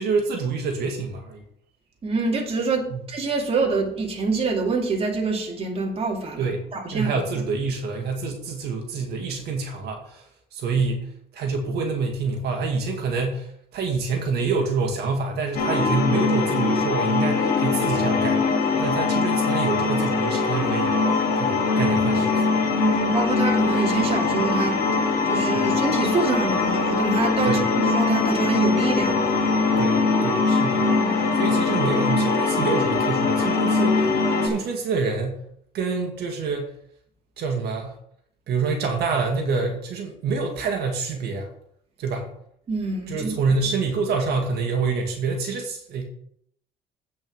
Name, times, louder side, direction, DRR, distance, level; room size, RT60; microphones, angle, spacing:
voice 1, 0.0-1.4 2.9-3.0 6.4-6.6 6.9-10.2 10.5-18.5 18.8-21.0 21.4-22.5 25.5-25.7 27.4-27.6 29.8-30.8 31.3-35.4 35.7-36.7 37.4-38.0 38.5-41.5 42.0-42.3 43.1-46.1, right 4 dB, 75° right, 2.0 m, -27 dB
voice 2, 2.0-7.1 22.8-29.4 30.8-31.3 42.7-43.4, right 3 dB, 35° right, 2.3 m, -26 dB
sound 1, 15.5-34.5, left 4 dB, 60° left, 2.8 m, -22 dB
8.9 x 5.3 x 6.4 m
cardioid pair, 110°, 17 cm